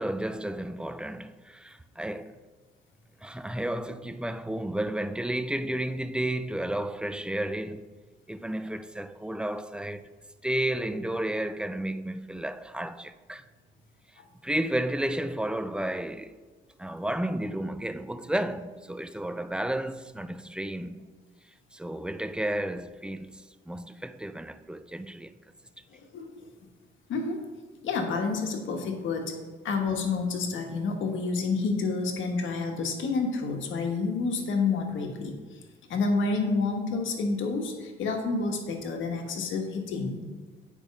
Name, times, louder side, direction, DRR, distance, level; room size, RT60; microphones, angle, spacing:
voice 1, 0.0-2.3 3.2-7.9 8.3-10.1 10.4-13.5 14.4-16.4 16.8-21.1 21.7-25.3, right 1 dB, 5° right, 0.4 m, -32 dB
voice 2, 25.9-26.5 27.1-27.4 27.8-29.3 29.6-35.6 35.9-40.2, left 4 dB, 75° left, 1.3 m, -29 dB
8.9 x 5.0 x 5.3 m
cardioid pair, 90°, 20 cm